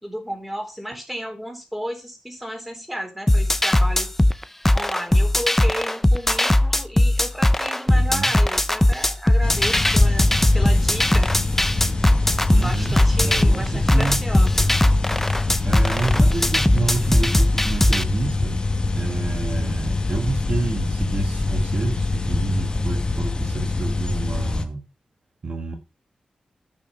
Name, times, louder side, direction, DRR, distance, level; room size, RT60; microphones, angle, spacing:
voice 1, 0.0-4.2 4.7-11.3 12.5-14.7, equal, 5° right, 4 dB, 3.7 m, -33 dB
sound 1, 3.3-18.0, left 1 dB, 10° left, 0.6 m, -19 dB
voice 2, 7.9-8.3 12.5-14.2 15.6-18.6 18.9-24.8 25.4-25.8, right 3 dB, 50° right, 3 dB, 1.6 m, -29 dB
sound 2, 9.4-24.6, left 3 dB, 35° left, 1.4 m, -24 dB
9.2 x 6.3 x 5.7 m, 0.28 s
wide cardioid pair, 90°, 3 cm